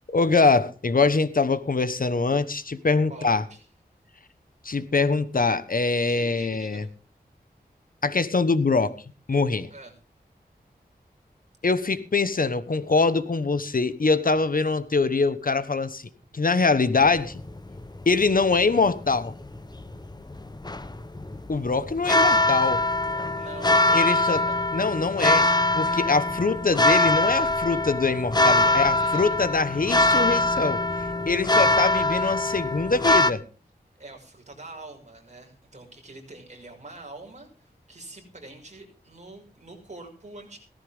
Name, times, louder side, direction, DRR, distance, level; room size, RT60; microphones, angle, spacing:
voice 1, 0.1-3.4 4.6-6.8 8.0-8.9 9.3-9.7 11.6-16.0 16.3-17.4 18.1-19.3 21.5-22.8 23.9-24.4 24.7-25.5 25.7-30.8 31.3-33.4, left 4 dB, 60° left, 13 dB, 1.2 m, -23 dB
voice 2, 3.1-3.6 6.1-6.9 9.7-9.9 23.3-24.7 28.6-29.9 34.0-40.6, right 2 dB, 45° right, 2 dB, 6.0 m, -45 dB
sound 1, 17.0-33.3, left 2 dB, 25° left, 1.0 m, -23 dB
17.5 x 14.5 x 3.6 m, 0.37 s
wide cardioid pair, 75°, 17 cm